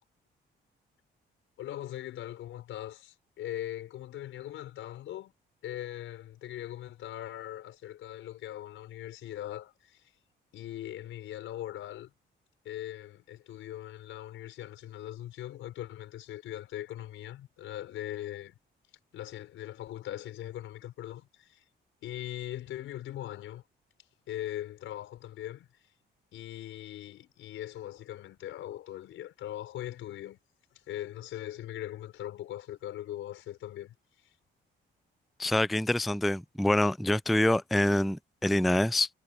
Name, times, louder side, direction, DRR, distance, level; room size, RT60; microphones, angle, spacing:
voice 1, 1.6-5.3 5.6-10.1 10.5-12.1 12.6-18.5 19.1-21.6 22.0-23.6 24.3-25.7 26.3-30.4 30.9-33.9, left 13 dB, 85° left, 5.1 m, -40 dB
voice 2, 35.4-39.1, left 1 dB, ahead, 0.3 m, -26 dB
cardioid pair, 90°, 20 cm